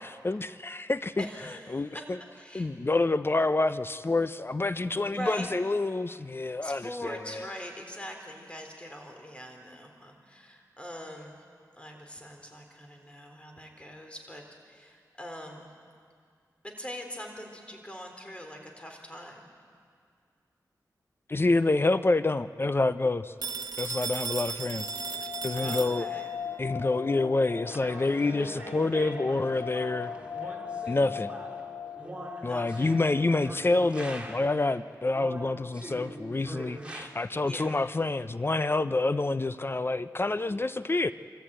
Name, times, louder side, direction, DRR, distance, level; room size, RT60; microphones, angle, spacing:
voice 1, 0.2-1.2 1.7-2.2 2.5-7.2 21.3-23.3 23.8-24.9 25.4-26.1 26.6-30.1 30.9-31.3 32.4-41.1, left 2 dB, 35° left, 13 dB, 0.6 m, -27 dB
voice 2, 1.2-2.7 5.1-5.5 6.6-11.4 11.8-15.7 16.6-19.6 25.5-26.3 32.5-33.0 37.4-37.8, equal, 15° left, 3 dB, 4.0 m, -42 dB
Telephone, 23.4-26.4, right 5 dB, 70° right, 1.0 m, -36 dB
sound 1, 24.6-35.4 35.7-35.8 36.2-36.3 36.8-37.2 37.7-37.8 38.0-38.5 38.8-38.9, left 7 dB, 70° left, 1.7 m, -40 dB
sound 2, 27.7-34.6 35.1-37.1, right 1 dB, 15° right, 2.8 m, -43 dB
24.5 x 14.5 x 8.9 m, 2.1 s
cardioid pair, 55°, 7 cm